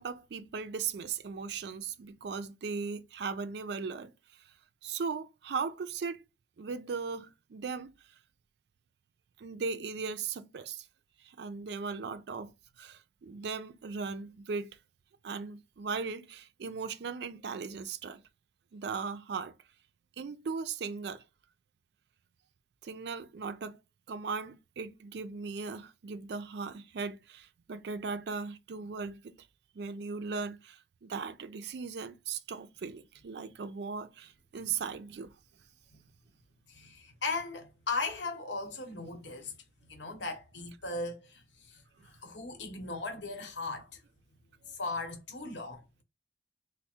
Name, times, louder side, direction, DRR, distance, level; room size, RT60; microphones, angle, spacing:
voice 1, 0.0-4.1 4.8-6.2 6.6-7.9 9.4-10.9 11.2-12.5 12.8-14.7 15.2-18.2 18.7-19.6 20.2-21.2 22.8-23.8 24.1-29.4 29.7-35.3 42.0-42.1 44.6-44.7, right 5 dB, 65° right, 0.4 m, -38 dB
voice 2, 36.7-39.5 39.9-41.4 41.7-41.8 42.1-44.0 44.8-45.8, left 3 dB, 85° left, 1.0 m, -37 dB
3.3 x 2.1 x 4.3 m
head